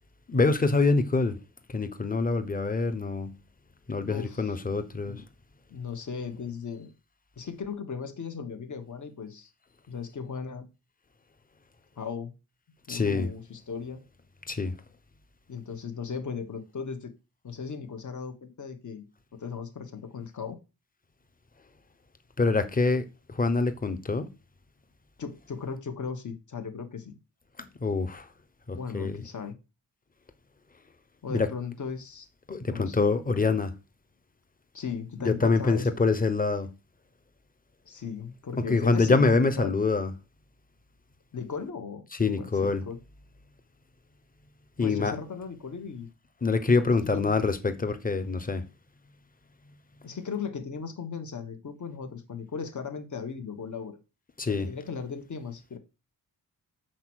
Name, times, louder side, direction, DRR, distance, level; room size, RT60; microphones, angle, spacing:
voice 1, 0.3-1.4 1.7-3.3 3.9-5.2 12.9-13.3 14.5-14.7 22.4-24.3 27.8-28.3 28.7-29.2 31.3-31.5 32.5-33.7 35.2-36.7 38.7-40.1 42.2-42.8 44.8-45.2 46.4-48.6 54.4-54.7, left 3 dB, 25° left, 1.0 m, -25 dB
voice 2, 4.0-4.5 5.0-5.2 5.7-6.9 7.4-9.5 9.9-10.7 12.0-12.3 12.9-14.0 15.5-17.1 17.4-19.0 19.3-20.6 25.2-27.1 28.7-29.5 31.2-32.3 32.7-33.1 34.7-35.9 37.8-39.3 39.6-39.8 41.3-42.0 42.3-43.0 44.8-46.1 47.0-47.4 50.0-54.0 54.5-55.8, left 6 dB, 50° left, 1.5 m, -37 dB
7.9 x 4.4 x 6.3 m
wide cardioid pair, 145°, 37 cm